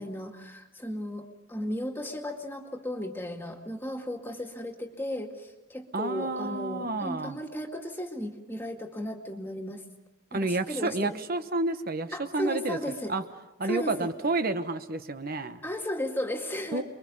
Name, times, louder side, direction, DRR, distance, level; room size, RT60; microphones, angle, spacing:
voice 1, 0.0-9.8 10.3-11.2 12.1-13.1 13.6-14.1 15.6-16.8, left 1 dB, 10° left, 3 dB, 2.2 m, -35 dB
voice 2, 5.9-7.4 10.3-12.8 13.1-13.2 13.6-15.6 16.7-16.8, right 2 dB, 50° right, 10 dB, 1.1 m, -30 dB
29.5 x 23.0 x 5.4 m, 1.0 s
head